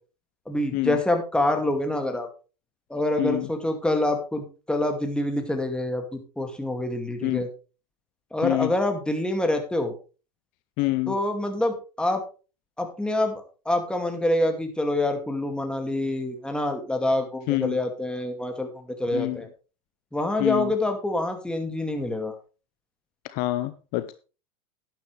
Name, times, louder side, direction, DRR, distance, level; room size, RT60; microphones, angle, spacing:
voice 1, 0.5-2.3 2.9-7.5 8.3-9.9 11.1-12.2 12.8-19.5 20.1-22.3, left 1 dB, 5° left, 5 dB, 2.3 m, -26 dB
voice 2, 3.2-3.5 7.2-7.4 8.4-8.7 10.8-11.2 17.5-17.8 19.1-19.4 20.4-20.7 23.3-24.1, left 20 dB, 50° left, 13 dB, 0.7 m, -26 dB
11.5 x 10.0 x 3.3 m, 0.34 s
hypercardioid pair, 90°, 19 cm